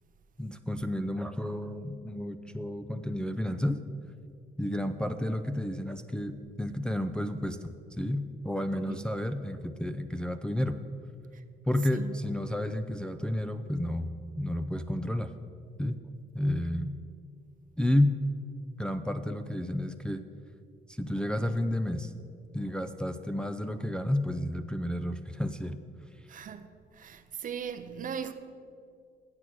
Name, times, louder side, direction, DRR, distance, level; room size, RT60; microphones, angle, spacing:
voice 1, 0.4-3.8 4.6-10.8 11.7-15.3 15.8-16.0 16.3-16.9 17.8-18.2 18.8-20.2 20.9-22.1 22.5-25.8, left 1 dB, 5° left, 0.4 m, -31 dB
voice 2, 26.3-26.6 26.9-28.3, right 7 dB, 50° right, 0.7 m, -38 dB
7.9 x 7.5 x 6.1 m
cardioid pair, 80°, 18 cm